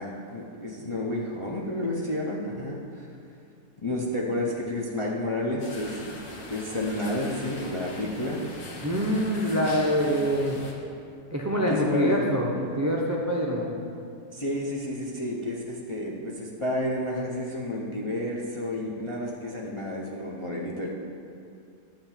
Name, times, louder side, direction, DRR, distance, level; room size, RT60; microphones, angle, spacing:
voice 1, 0.0-3.1 3.8-6.2 6.5-8.4 11.7-12.2 14.3-20.9, left 1 dB, 35° left, -3 dB, 0.5 m, -31 dB
sound 1, 5.6-10.7, left 2 dB, 65° left, 1.6 m, -42 dB
voice 2, 8.8-10.6 11.3-13.7, equal, 25° right, -2 dB, 0.3 m, -25 dB
11.0 x 3.8 x 7.2 m, 2.5 s
omnidirectional pair, 1.7 m